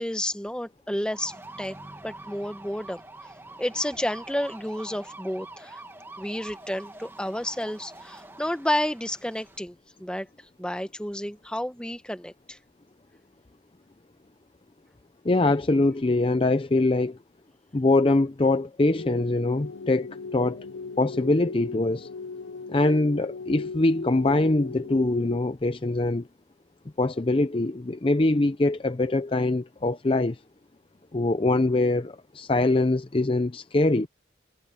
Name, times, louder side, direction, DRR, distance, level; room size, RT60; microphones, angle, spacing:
voice 1, 0.0-1.7 2.0-3.0 3.6-5.8 6.2-9.7 10.0-10.3 10.6-12.6, left 1 dB, 5° left, 1.1 m, -31 dB
sound 1, 1.1-9.6, right 2 dB, 10° right, 1.4 m, -45 dB
voice 2, 15.2-17.2 17.7-20.7 21.0-22.1 22.7-26.3 27.0-30.4 31.1-34.1, left 2 dB, 30° left, 0.6 m, -23 dB
sound 2, 18.9-25.4, left 4 dB, 80° left, 0.7 m, -38 dB
head